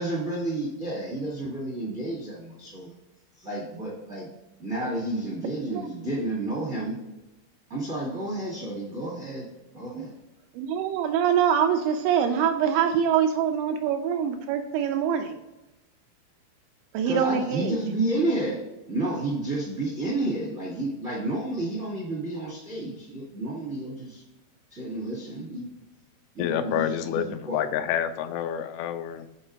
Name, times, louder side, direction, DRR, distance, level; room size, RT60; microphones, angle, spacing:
voice 1, 0.0-2.9 3.4-4.3 4.6-6.9 7.7-9.5 9.7-10.1 17.0-18.6 18.9-24.2 24.7-25.7 26.3-27.6, right 2 dB, 40° right, -5 dB, 1.0 m, -31 dB
voice 2, 10.5-15.4 16.9-17.8, right 8 dB, 85° right, 6 dB, 2.6 m, -24 dB
voice 3, 26.4-29.3, left 10 dB, 85° left, 9 dB, 2.9 m, -28 dB
7.9 x 4.3 x 3.8 m, 1.0 s
omnidirectional pair, 5.4 m